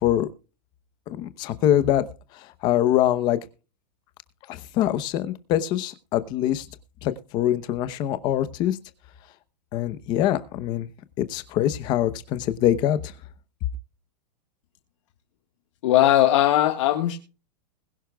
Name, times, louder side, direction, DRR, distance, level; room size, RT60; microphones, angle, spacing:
voice 1, 1.1-2.1 2.3-3.4 4.5-6.7 7.0-8.8 9.7-10.9 11.2-13.1, left 12 dB, 20° left, 13 dB, 0.9 m, -24 dB
voice 2, 15.8-17.2, left 13 dB, 45° left, 4 dB, 1.6 m, -19 dB
21.5 x 11.0 x 2.3 m, 0.34 s
supercardioid pair, 175°, 21 cm